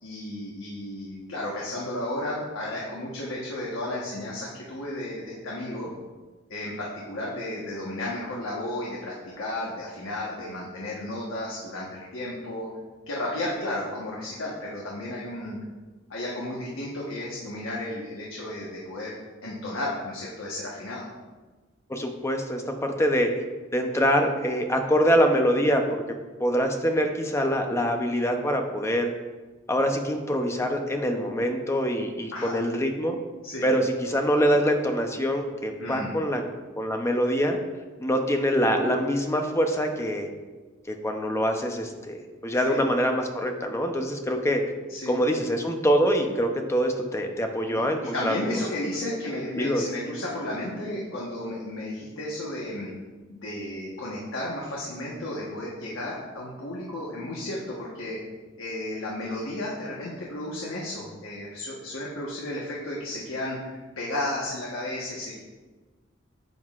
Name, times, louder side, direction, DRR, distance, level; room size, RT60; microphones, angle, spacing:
voice 1, 0.0-5.9 6.5-12.7 13.1-15.6 16.1-21.1 32.3-32.6 33.4-33.7 35.8-36.1 42.7-42.8 44.9-45.2 47.7-52.9 53.3-58.2 58.6-65.4, left 1 dB, 85° left, -4 dB, 1.3 m, -33 dB
voice 2, 21.9-23.3 23.7-26.0 26.4-29.1 29.7-33.1 33.6-36.4 36.8-37.6 38.0-40.3 40.9-44.6 45.1-48.4 49.6-49.8, equal, 15° left, 4 dB, 0.7 m, -24 dB
9.3 x 7.7 x 2.5 m, 1.3 s
head